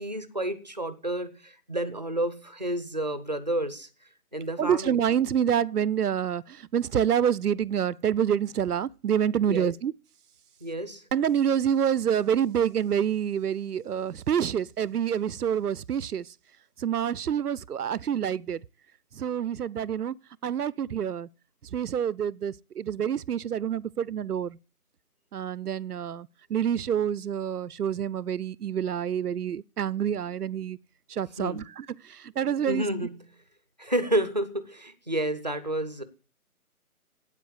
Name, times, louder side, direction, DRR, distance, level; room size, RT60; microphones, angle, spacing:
voice 1, 0.0-3.9 4.3-5.0 9.5-9.7 10.6-11.1 31.4-31.7 32.7-33.3 33.8-36.0, right 1 dB, 30° right, 0.7 m, -30 dB
voice 2, 4.6-9.9 11.1-16.3 16.8-18.6 19.2-20.1 20.4-21.3 21.7-24.6 25.3-30.8 31.1-32.8, right 9 dB, 85° right, 0.6 m, -27 dB
8.8 x 8.3 x 8.0 m
figure-of-eight pair, 170°, 45 cm